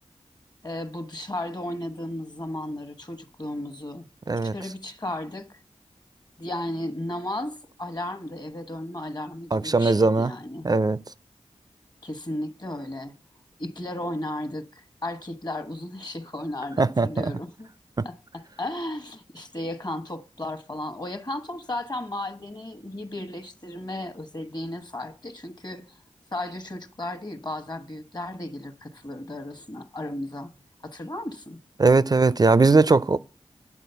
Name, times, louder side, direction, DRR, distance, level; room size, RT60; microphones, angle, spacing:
voice 1, 0.6-4.1 4.4-5.6 6.4-10.7 12.0-13.1 13.6-17.7 18.0-25.8 26.3-30.5 30.8-31.6, left 1 dB, 35° left, 1.2 m, -34 dB
voice 2, 9.5-10.3 10.6-11.0 16.8-17.3 18.0-18.1 31.8-33.2, right 3 dB, 35° right, 0.4 m, -19 dB
9.2 x 4.0 x 6.8 m
cardioid pair, 40°, 12 cm